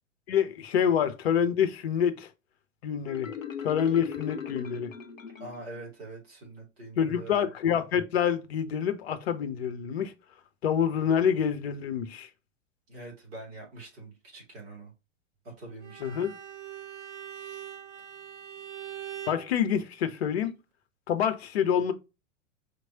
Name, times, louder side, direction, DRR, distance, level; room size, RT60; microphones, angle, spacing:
voice 1, 0.3-2.3 2.8-3.3 3.6-4.9 7.0-10.1 10.6-12.3 16.0-16.3 19.3-20.5 21.1-21.9, left 8 dB, 55° left, 0.7 m, -27 dB
Marimba xylophone, 3.1-5.8, left 8 dB, 90° left, 0.6 m, -38 dB
voice 2, 5.4-7.4 12.9-14.9 15.4-16.2 17.4-17.7, right 2 dB, 50° right, 2.8 m, -44 dB
Bowed string instrument, 15.8-19.5, right 10 dB, 65° right, 0.8 m, -42 dB
5.1 x 3.0 x 2.8 m
figure-of-eight pair, 95°, 38 cm